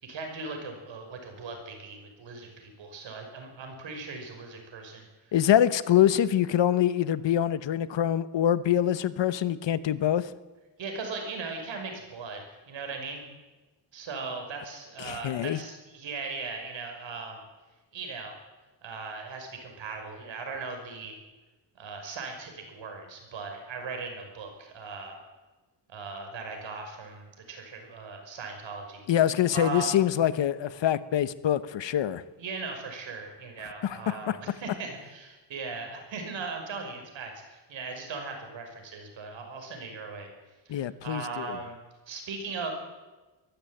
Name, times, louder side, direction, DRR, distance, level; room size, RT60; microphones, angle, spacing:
voice 1, 0.0-5.0 10.8-13.2 13.9-17.4 17.9-18.4 18.8-21.2 21.8-25.2 25.9-29.0 29.5-29.9 32.4-40.3 40.7-41.8 42.1-42.7, right 4 dB, 80° right, 4 dB, 5.9 m, -38 dB
voice 2, 5.3-10.3 15.0-15.6 29.1-32.2 33.8-34.4 40.7-41.6, left 11 dB, 75° left, 15 dB, 1.1 m, -25 dB
23.0 x 14.0 x 9.0 m, 1.2 s
wide cardioid pair, 170°, 45 cm